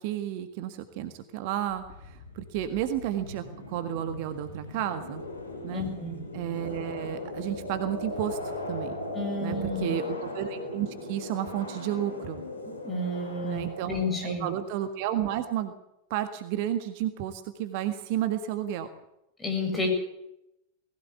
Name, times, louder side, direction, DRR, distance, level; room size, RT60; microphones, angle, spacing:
voice 1, 0.0-5.2 5.6-5.9 6.3-9.0 9.4-12.4 13.4-15.7 16.1-18.9, right 11 dB, 45° right, 9 dB, 1.7 m, -32 dB
sound 1, 1.7-15.1, left 2 dB, 70° left, 6.3 m, -38 dB
voice 2, 5.7-6.2 9.1-10.0 12.8-14.5 19.4-19.9, left 2 dB, 15° left, 3 dB, 7.6 m, -31 dB
20.0 x 16.5 x 8.3 m, 0.84 s
figure-of-eight pair, 90°, 0 cm